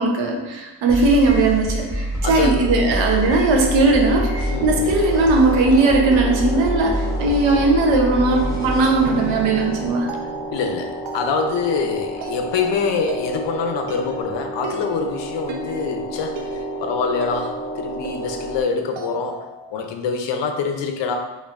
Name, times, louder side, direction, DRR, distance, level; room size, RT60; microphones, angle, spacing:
voice 1, 0.0-10.1, right 3 dB, 85° right, 1 dB, 0.8 m, -18 dB
sound 1, 0.9-9.9, equal, 5° right, 1.0 m, -26 dB
voice 2, 2.2-2.6 4.5-4.9 10.5-21.2, left 5 dB, 70° left, 5 dB, 0.6 m, -25 dB
sound 2, 2.6-18.6, equal, 20° left, 0.3 m, -32 dB
sound 3, 3.8-19.7, right 3 dB, 60° right, 0.6 m, -36 dB
4.3 x 3.1 x 2.5 m, 1.1 s
wide cardioid pair, 155°, 45 cm